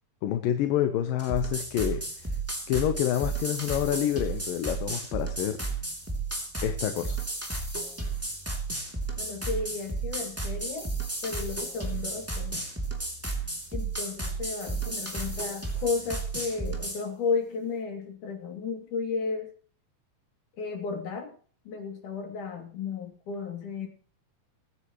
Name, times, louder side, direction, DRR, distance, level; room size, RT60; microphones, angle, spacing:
voice 1, 0.2-2.0 2.7-5.6 6.6-7.1, left 11 dB, 80° left, 8 dB, 2.7 m, -27 dB
sound 1, 1.2-17.0, right 3 dB, 5° right, 2.6 m, -33 dB
voice 2, 9.2-10.9 11.2-12.7 13.7-19.5 20.6-21.4 21.7-23.9, left 4 dB, 65° left, 3 dB, 4.1 m, -33 dB
22.0 x 10.0 x 3.1 m, 0.43 s
omnidirectional pair, 4.0 m